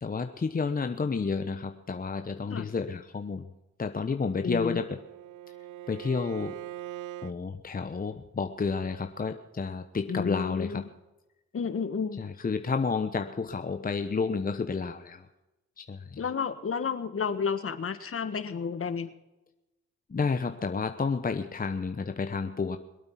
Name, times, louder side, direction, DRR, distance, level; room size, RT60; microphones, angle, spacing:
voice 1, 0.0-3.4 3.8-5.0 5.9-6.6 7.2-10.8 12.2-15.3 15.8-16.2 20.1-22.8, left 4 dB, 30° left, 7 dB, 1.1 m, -30 dB
Bowed string instrument, 4.2-7.4, right 13 dB, 90° right, 0.5 m, -42 dB
voice 2, 4.4-4.8 10.1-10.8 11.5-12.2 16.2-19.1, left 6 dB, 50° left, 11 dB, 1.6 m, -31 dB
22.5 x 8.7 x 5.9 m, 0.99 s
cardioid pair, 65°, 29 cm